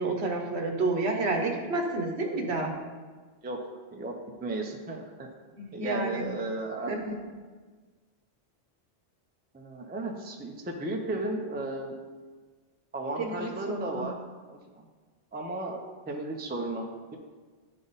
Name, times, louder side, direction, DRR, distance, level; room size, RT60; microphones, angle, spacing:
voice 1, 0.0-2.7 5.6-6.3 6.9-7.1 13.2-14.0, right 2 dB, 70° right, 3 dB, 1.1 m, -30 dB
voice 2, 4.4-5.3 5.7-6.9 9.5-12.0 12.9-14.2 14.4-14.8 15.3-15.8 16.1-17.2, right 2 dB, 15° right, 2 dB, 0.4 m, -34 dB
10.0 x 3.6 x 4.0 m, 1.4 s
omnidirectional pair, 1.2 m